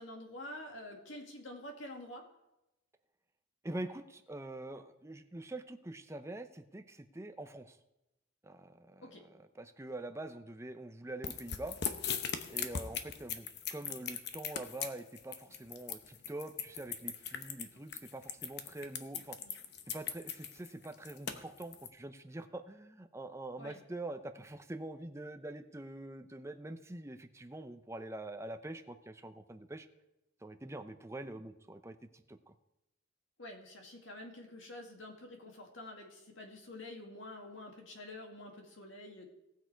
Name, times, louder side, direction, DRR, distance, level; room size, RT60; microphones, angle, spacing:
voice 1, 0.0-2.2 9.0-9.2 19.4-19.6 23.6-23.8 33.4-39.3, left 1 dB, 75° left, 2 dB, 2.1 m, -48 dB
voice 2, 3.6-7.8 8.4-11.8 12.5-19.4 19.9-29.9 30.4-32.6, right 1 dB, 15° right, 8 dB, 0.6 m, -45 dB
sound 1, 11.2-21.9, left 7 dB, 55° left, 0.8 m, -39 dB
18.0 x 6.5 x 4.6 m, 0.92 s
head